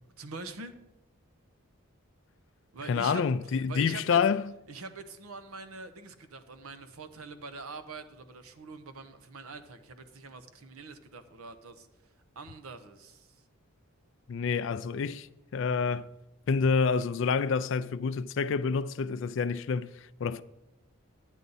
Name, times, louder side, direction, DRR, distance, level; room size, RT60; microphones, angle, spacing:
voice 1, 0.2-0.7 2.7-3.2 3.7-4.2 4.7-11.9 12.4-13.4, right 3 dB, 85° right, 0.9 m, -44 dB
voice 2, 2.9-4.5 14.3-15.3 15.5-16.1 16.5-19.9 20.2-20.4, left 5 dB, 60° left, 0.3 m, -28 dB
11.0 x 9.1 x 4.0 m
head